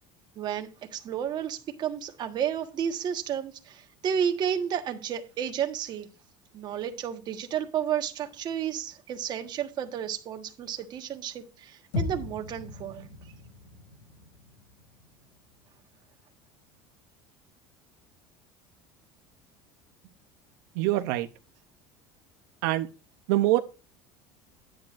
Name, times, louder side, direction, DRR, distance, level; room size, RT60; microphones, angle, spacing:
voice 1, 0.3-6.1 6.5-13.3, right 9 dB, 40° right, 1.3 m, -32 dB
sound 1, 11.9-16.3, left 2 dB, 90° left, 5.7 m, -38 dB
voice 2, 20.8-21.3 22.6-22.9 23.3-23.6, right 16 dB, 80° right, 0.7 m, -24 dB
9.4 x 9.0 x 2.5 m
cardioid pair, 130°, 11 cm